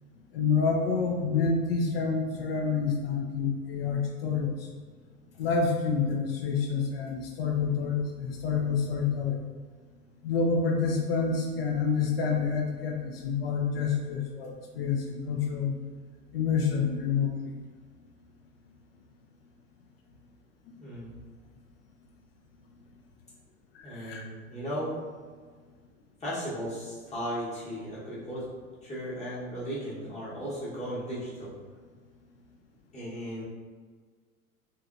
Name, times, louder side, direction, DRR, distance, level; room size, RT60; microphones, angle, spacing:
voice 1, 0.3-4.7 5.4-9.4 10.2-15.8 16.3-17.5 23.7-24.2, left 5 dB, 45° left, 1 dB, 0.4 m, -28 dB
voice 2, 20.8-21.1 23.8-24.9 26.2-28.5 28.8-31.5 32.9-33.4, equal, 15° left, -8 dB, 1.0 m, -36 dB
3.2 x 2.8 x 2.4 m, 1.5 s
figure-of-eight pair, 90°, 42 cm